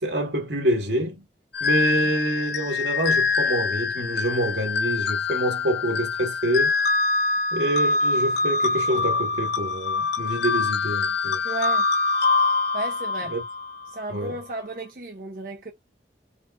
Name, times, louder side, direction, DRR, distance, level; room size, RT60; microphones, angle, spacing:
voice 1, 0.0-1.2 1.6-6.7 7.5-11.4 13.3-13.4 14.1-14.3, right 1 dB, 85° right, 1.6 m, -26 dB
sound 1, 1.5-13.9, left 4 dB, 75° left, 0.7 m, -24 dB
voice 2, 11.4-11.9 12.7-13.4 13.9-15.7, right 2 dB, 50° right, 0.7 m, -33 dB
4.9 x 2.5 x 2.4 m
head